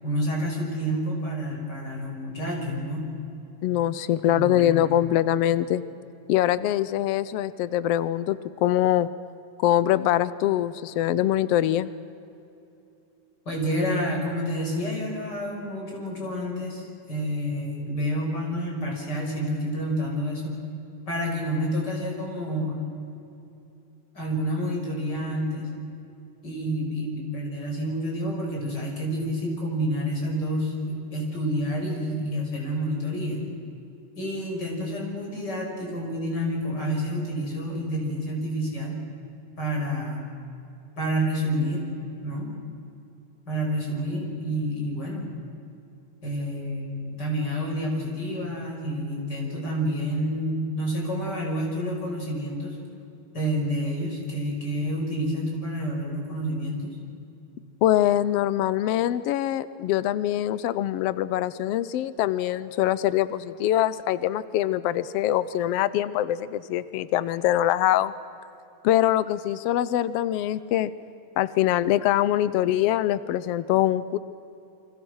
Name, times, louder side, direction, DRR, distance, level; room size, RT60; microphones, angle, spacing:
voice 1, 0.0-3.1 4.3-4.7 13.5-20.5 21.1-22.8 24.1-25.7 26.4-33.5 34.2-39.0 39.6-40.2 41.0-41.8 42.2-42.5 43.5-45.3 46.2-52.8 53.3-56.9, equal, 30° left, 0 dB, 6.5 m, -29 dB
voice 2, 3.6-5.8 6.3-9.1 9.6-11.9 57.8-68.1 68.8-70.9 71.4-74.2, left 12 dB, 90° left, 16 dB, 1.3 m, -23 dB
29.0 x 25.5 x 6.4 m, 2.7 s
omnidirectional pair, 3.6 m